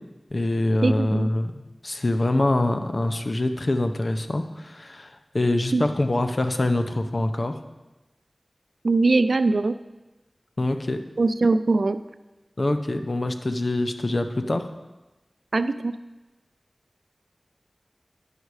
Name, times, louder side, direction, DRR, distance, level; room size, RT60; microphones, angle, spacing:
voice 1, 0.3-7.5 10.6-11.0 12.6-14.7, left 2 dB, 55° left, 7 dB, 0.7 m, -25 dB
voice 2, 0.8-1.3 5.7-5.8 8.8-9.7 11.2-12.0 15.5-15.9, right 3 dB, 85° right, 12 dB, 0.3 m, -21 dB
9.9 x 6.4 x 4.8 m, 1.1 s
wide cardioid pair, 45°, 0 cm